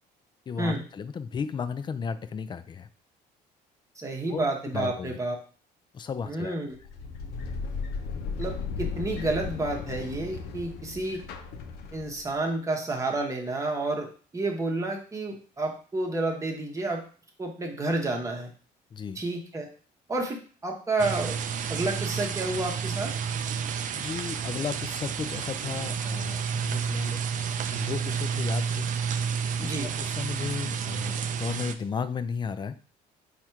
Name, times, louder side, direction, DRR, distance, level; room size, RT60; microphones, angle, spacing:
voice 1, 0.5-2.9 4.3-4.4 4.7-5.2 5.9-6.6 18.9-19.2 23.9-27.2 27.7-28.9 29.6-32.7, left 6 dB, 25° left, 12 dB, 0.3 m, -34 dB
voice 2, 4.0-5.4 6.2-6.8 8.4-11.2 11.9-14.1 14.3-17.0 17.4-18.5 19.1-19.7 20.1-21.4 21.7-23.1 29.6-29.9, right 2 dB, 20° right, 1 dB, 1.0 m, -30 dB
sound 1, 6.7-12.4, left 5 dB, 80° left, 0.6 m, -35 dB
sound 2, 21.0-31.7, right 6 dB, 50° right, 0.4 m, -30 dB
4.2 x 2.4 x 4.5 m, 0.40 s
cardioid pair, 110°, 17 cm